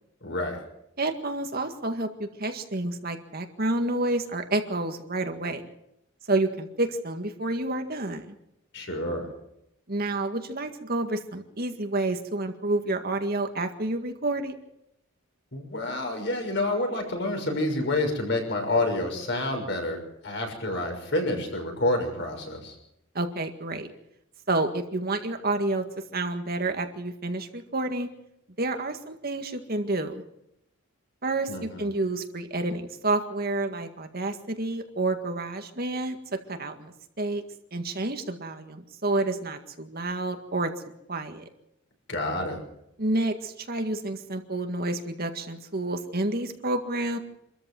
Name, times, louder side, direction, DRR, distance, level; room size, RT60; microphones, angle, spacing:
voice 1, 0.2-0.6 8.7-9.3 15.5-20.0 20.2-22.7 31.5-31.8 42.1-42.6, left 2 dB, 55° left, 3 dB, 6.3 m, -28 dB
voice 2, 1.0-5.6 6.3-8.3 9.9-14.5 23.2-23.9 24.5-25.9 26.1-28.1 28.6-30.2 31.2-36.9 37.2-37.4 37.7-40.7 41.1-41.5 43.0-47.2, right 2 dB, 45° right, 6 dB, 1.9 m, -29 dB
26.0 x 14.0 x 7.7 m, 0.82 s
head